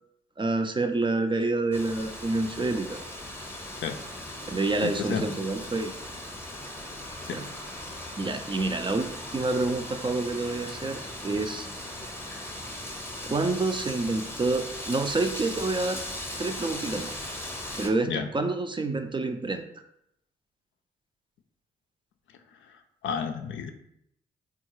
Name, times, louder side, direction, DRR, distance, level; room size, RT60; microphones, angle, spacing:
voice 1, 0.4-3.0 4.5-5.9 7.3-7.5 8.2-11.7 13.2-16.0 16.4-17.1 17.8-19.6, right 3 dB, 25° right, 7 dB, 0.4 m, -28 dB
Wind, 1.7-17.9, left 1 dB, 10° left, 0.7 m, -38 dB
voice 2, 4.8-5.3 7.2-7.4 18.1-18.3 23.0-23.7, left 7 dB, 70° left, 6 dB, 0.4 m, -31 dB
3.6 x 2.4 x 3.0 m, 0.77 s
hypercardioid pair, 40°, 21 cm